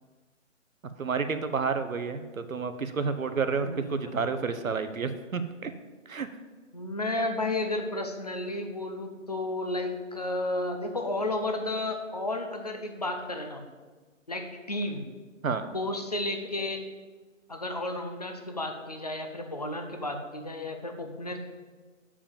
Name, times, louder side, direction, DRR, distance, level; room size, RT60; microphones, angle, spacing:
voice 1, 1.0-5.7 6.1-6.3 15.4-15.6, right 5 dB, 90° right, 10 dB, 1.0 m, -30 dB
voice 2, 3.6-4.4 6.7-13.7 14.3-15.1 15.7-16.8 17.5-21.4, left 2 dB, 30° left, 5 dB, 0.6 m, -32 dB
7.2 x 5.0 x 7.1 m, 1.4 s
hypercardioid pair, 170°, 40 cm